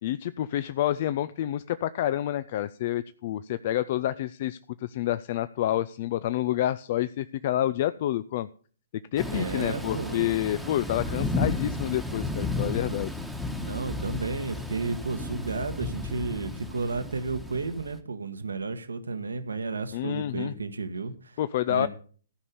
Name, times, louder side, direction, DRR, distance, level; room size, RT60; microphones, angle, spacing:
voice 1, 0.0-8.5 9.1-13.1 19.9-20.6 21.4-21.9, left 12 dB, 50° left, 14 dB, 0.5 m, -28 dB
Thunder / Rain, 9.2-18.0, left 2 dB, ahead, 1.3 m, -33 dB
voice 2, 9.3-10.3 13.6-21.4 21.7-21.9, right 4 dB, 85° right, 10 dB, 1.4 m, -32 dB
14.5 x 5.5 x 6.7 m, 0.42 s
hypercardioid pair, 125°, 0 cm